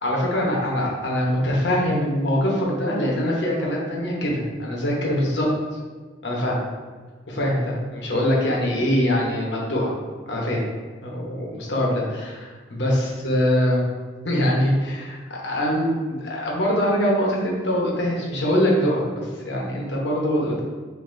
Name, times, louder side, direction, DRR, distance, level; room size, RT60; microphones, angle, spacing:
voice 1, 0.0-5.5 6.2-6.6 7.3-9.9 10.3-10.6 11.0-13.9 14.2-20.6, equal, 60° left, -3 dB, 0.9 m, -23 dB
4.0 x 2.7 x 3.2 m, 1.4 s
head